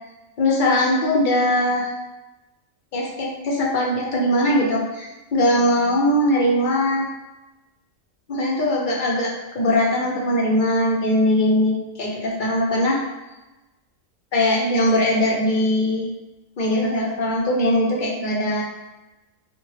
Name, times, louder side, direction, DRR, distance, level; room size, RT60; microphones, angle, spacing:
voice 1, 0.4-1.9 2.9-7.0 8.3-13.0 14.3-16.1 16.6-18.6, left 1 dB, 55° left, -2 dB, 0.5 m, -20 dB
3.7 x 2.2 x 3.1 m, 1.1 s
omnidirectional pair, 1.3 m